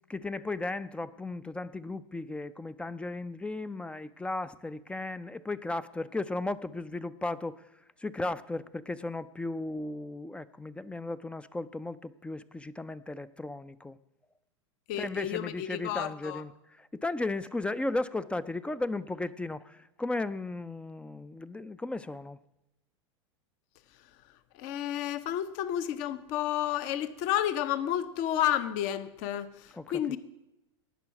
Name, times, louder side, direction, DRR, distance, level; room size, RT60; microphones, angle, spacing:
voice 1, 0.1-7.6 8.0-14.0 15.0-22.4 29.7-30.2, left 2 dB, 5° left, 0.4 m, -35 dB
voice 2, 14.9-16.4 24.6-30.2, left 11 dB, 50° left, 0.9 m, -31 dB
18.5 x 6.3 x 5.9 m
hypercardioid pair, 105°, 16 cm